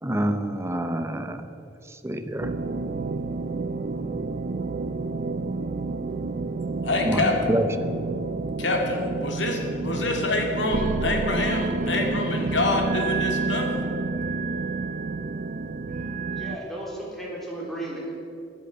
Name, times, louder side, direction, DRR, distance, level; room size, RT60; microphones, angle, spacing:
voice 1, 0.0-1.5 1.9-2.5 7.0-7.7, right 1 dB, 15° right, 8 dB, 0.7 m, -27 dB
sound 1, 2.4-16.6, right 3 dB, 45° right, 0.4 m, -29 dB
voice 2, 6.8-7.3 8.6-13.7, left 2 dB, 80° left, 2 dB, 2.2 m, -26 dB
voice 3, 16.3-18.1, right 1 dB, ahead, -4 dB, 3.4 m, -34 dB
11.0 x 10.0 x 7.9 m, 2.6 s
head